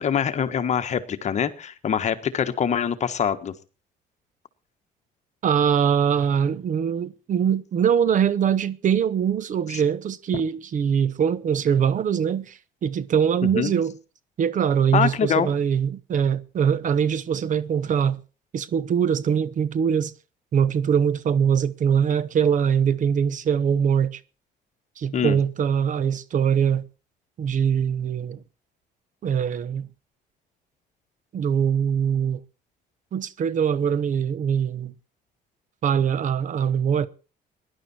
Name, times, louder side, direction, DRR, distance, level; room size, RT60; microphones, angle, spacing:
voice 1, 0.0-3.5 9.7-9.8 10.3-10.4 13.5-13.7 14.9-15.5 25.1-25.4, left 8 dB, 45° left, 1.6 m, -24 dB
voice 2, 5.4-13.9 14.4-18.2 18.5-20.1 20.5-24.2 25.0-26.8 27.4-28.4 29.2-29.9 31.3-32.4 33.1-34.9 35.8-37.1, right 7 dB, 50° right, 1.1 m, -22 dB
18.5 x 11.0 x 4.4 m
cardioid pair, 110°, 17 cm